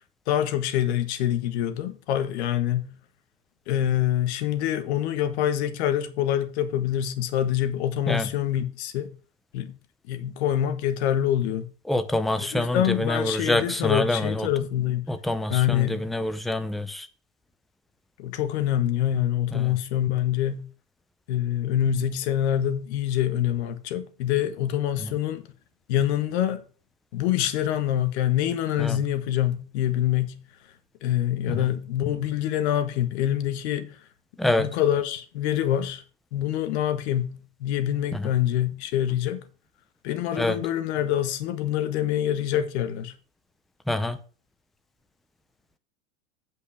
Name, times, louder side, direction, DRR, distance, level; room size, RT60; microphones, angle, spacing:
voice 1, 0.3-2.9 3.7-9.1 9.5-9.7 10.1-11.7 12.4-15.0 15.5-16.1 18.2-20.7 21.3-25.4 25.9-26.6 27.1-30.4 31.0-34.0 34.6-36.0 36.3-39.4 40.0-43.1, left 11 dB, 60° left, 1.6 m, -25 dB
voice 2, 11.9-14.5 15.1-17.1 19.5-19.8 25.0-25.1 28.8-29.0 31.5-31.7 34.4-34.7 38.1-38.3 40.3-40.6 43.9-44.2, left 1 dB, ahead, 0.4 m, -26 dB
8.5 x 5.4 x 5.8 m
supercardioid pair, 140°, 37 cm